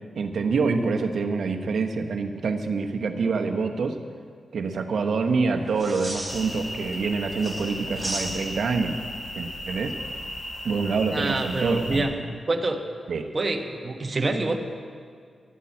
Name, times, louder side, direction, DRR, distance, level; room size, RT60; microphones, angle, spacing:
voice 1, 0.2-3.9 4.5-9.0 9.4-10.0 10.6-12.0 13.1-13.3, right 4 dB, 70° right, 5 dB, 1.1 m, -26 dB
sound 1, 5.7-7.0 7.3-8.8 11.3-11.6, right 1 dB, 5° right, 3.9 m, -35 dB
sound 2, 6.3-12.0, left 1 dB, 45° left, 4.0 m, -36 dB
voice 2, 11.1-12.2 12.5-12.8 13.3-14.6, right 2 dB, 40° right, 4 dB, 1.3 m, -26 dB
12.5 x 8.5 x 8.6 m, 2.1 s
cardioid pair, 50°, 0 cm